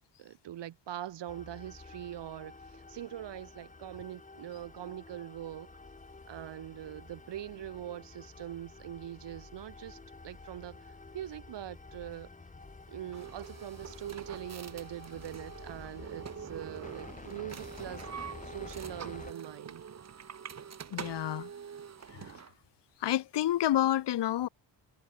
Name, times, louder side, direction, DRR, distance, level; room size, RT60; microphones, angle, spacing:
voice 1, 0.2-5.7 6.3-10.0 10.2-12.3 12.9-19.8, right 12 dB, 75° right, 7.6 m, -43 dB
sound 1, 1.3-19.3, left 3 dB, 20° left, 4.5 m, -50 dB
sound 2, 13.1-22.5, right 7 dB, 40° right, 2.1 m, -45 dB
voice 2, 20.9-21.5 22.1-22.4 23.0-24.5, left 12 dB, 70° left, 2.1 m, -29 dB
cardioid pair, 135°, 42 cm